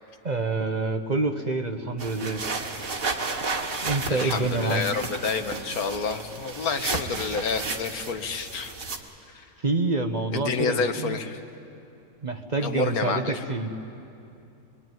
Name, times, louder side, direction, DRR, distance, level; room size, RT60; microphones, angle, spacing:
voice 1, 0.2-2.4 3.8-5.0 9.6-11.2 12.2-13.7, right 3 dB, 35° right, 6 dB, 1.0 m, -27 dB
sound 1, 2.0-9.0, right 3 dB, 70° right, 2.1 m, -33 dB
voice 2, 4.1-8.7 9.3-9.4 10.3-11.4 12.6-13.4, left 5 dB, 85° left, 7 dB, 1.6 m, -29 dB
24.5 x 21.5 x 9.3 m, 2.7 s
omnidirectional pair, 1.5 m